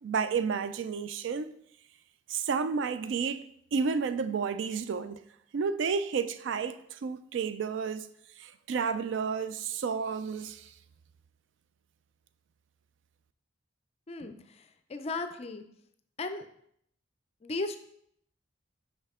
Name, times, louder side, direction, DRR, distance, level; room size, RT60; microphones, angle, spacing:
voice 1, 0.0-1.5 2.3-3.4 3.7-5.2 5.5-8.1 8.4-10.7, right 5 dB, 65° right, 0.3 m, -31 dB
voice 2, 14.1-14.6 14.9-15.6 16.2-16.5 17.4-17.8, left 3 dB, 30° left, 0.4 m, -35 dB
5.5 x 5.4 x 3.6 m
head